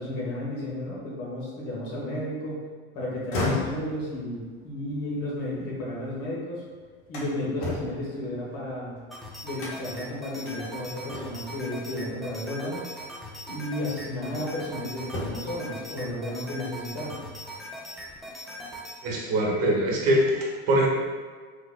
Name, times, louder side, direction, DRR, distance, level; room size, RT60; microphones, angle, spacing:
voice 1, 0.0-2.7 2.9-6.6 7.1-8.9 9.4-12.8 13.5-17.2, left 1 dB, 45° left, -5 dB, 1.1 m, -33 dB
sound 1, 3.1-6.2 6.6-9.0 9.6-10.0 10.5-10.6 11.1-11.6 12.8-13.0 13.6-14.7 15.0-15.6, left 2 dB, 60° left, 1.1 m, -35 dB
sound 2, 9.1-19.0, equal, ahead, 0.5 m, -40 dB
voice 2, 19.0-20.9, right 1 dB, 50° right, -1 dB, 1.0 m, -23 dB
3.8 x 2.9 x 2.2 m, 1.5 s
hypercardioid pair, 90°, 33 cm